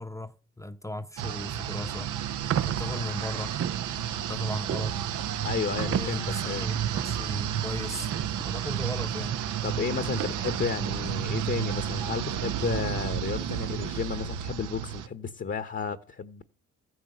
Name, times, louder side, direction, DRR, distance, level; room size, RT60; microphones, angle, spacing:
voice 1, 0.0-2.1 2.7-3.5 4.3-5.0 5.8-8.1 8.5-9.4, left 1 dB, 10° left, 0.9 m, -37 dB
sound 1, 1.2-15.1, right 10 dB, 85° right, 1.4 m, -32 dB
sound 2, 2.4-11.5, right 10 dB, 50° right, 0.6 m, -36 dB
sound 3, 2.8-12.7, right 10 dB, 70° right, 1.0 m, -41 dB
voice 2, 5.4-6.7 9.6-16.4, left 6 dB, 40° left, 1.2 m, -32 dB
14.5 x 9.5 x 7.9 m
cardioid pair, 90°, 30 cm